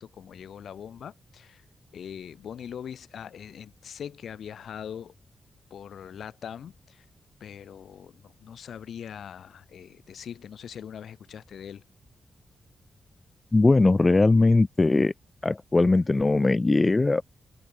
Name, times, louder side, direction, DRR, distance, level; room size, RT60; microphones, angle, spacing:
voice 1, 0.0-1.6 1.9-5.1 5.7-7.0 7.4-11.8, left 8 dB, 80° left, 7.9 m, -41 dB
voice 2, 13.5-15.1 15.4-17.2, left 3 dB, 25° left, 0.6 m, -20 dB
cardioid pair, 100°, 0 cm